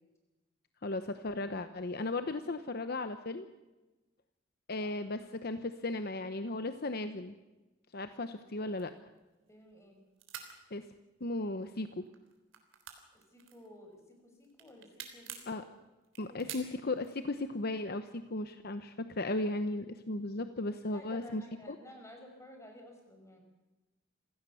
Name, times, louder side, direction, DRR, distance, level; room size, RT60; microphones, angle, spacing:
voice 1, 0.8-3.5 4.7-7.3 7.9-8.9 10.7-10.9 11.2-12.1 15.5-15.6 16.2-21.4 21.7-21.8, left 2 dB, 50° left, 10 dB, 0.9 m, -36 dB
sound 1, 8.7-9.9 10.2-10.5 11.3-11.8 12.0-14.0 14.4-15.5 16.0-17.2, right 9 dB, 70° right, 3.6 m, -47 dB
voice 2, 9.5-10.0 13.1-15.7 16.2-16.4 20.9-23.4, left 1 dB, 15° left, 3 dB, 5.1 m, -53 dB
27.0 x 16.5 x 7.1 m, 1.1 s
head